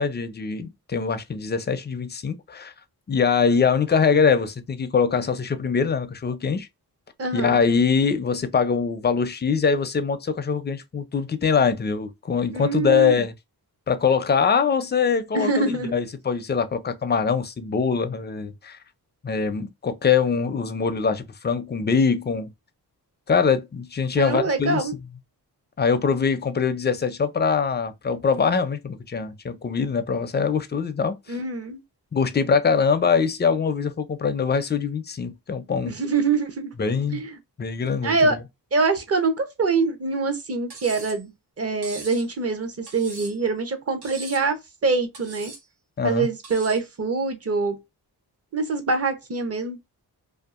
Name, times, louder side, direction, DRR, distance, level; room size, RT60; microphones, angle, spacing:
voice 1, 0.0-2.7 3.1-6.7 7.3-13.3 13.9-15.6 15.9-18.8 19.2-22.5 23.3-24.9 25.8-31.4 32.1-35.9 36.8-37.2 37.6-38.4 46.0-46.3, left 5 dB, 25° left, 0.4 m, -23 dB
voice 2, 7.2-7.6 12.5-13.2 15.3-15.9 24.2-24.9 31.3-31.8 35.9-36.7 37.1-37.3 38.0-38.4 38.7-41.3 41.6-44.6 44.8-45.5 46.0-47.8 48.5-49.8, right 3 dB, 40° right, 0.8 m, -24 dB
Cutlery silverware, 40.7-41.2 41.8-42.3 42.9-43.5 44.0-44.5 45.1-45.6 46.4-46.9, right 4 dB, 80° right, 1.1 m, -40 dB
2.7 x 2.4 x 2.4 m
wide cardioid pair, 85°, 39 cm